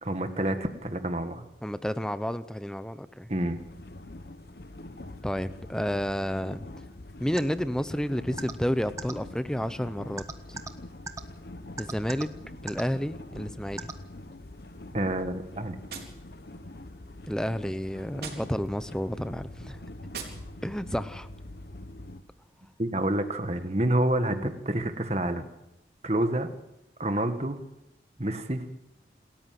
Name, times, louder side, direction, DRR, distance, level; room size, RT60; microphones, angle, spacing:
voice 1, 0.0-1.4 3.3-3.6 14.9-15.8 22.8-25.5 26.0-26.5 27.0-27.6 28.2-28.9, right 1 dB, 35° right, 8 dB, 1.7 m, -28 dB
voice 2, 1.6-3.3 5.2-6.6 7.2-10.6 11.8-12.3 12.6-13.9 17.3-19.8 20.6-21.3, equal, 5° left, 12 dB, 0.8 m, -31 dB
sound 1, 3.6-22.2, left 1 dB, 60° left, 1.1 m, -44 dB
sound 2, 7.4-7.5 8.4-8.5 9.0-9.1 10.2-10.7 11.1-11.2 11.8-12.2 12.7-12.8 13.8-13.9, right 3 dB, 20° right, 1.2 m, -35 dB
Gunshot gunfire, 15.9-17.0 18.1-19.0 20.1-21.0, right 6 dB, 60° right, 4.4 m, -44 dB
27.5 x 13.5 x 7.7 m, 0.87 s
head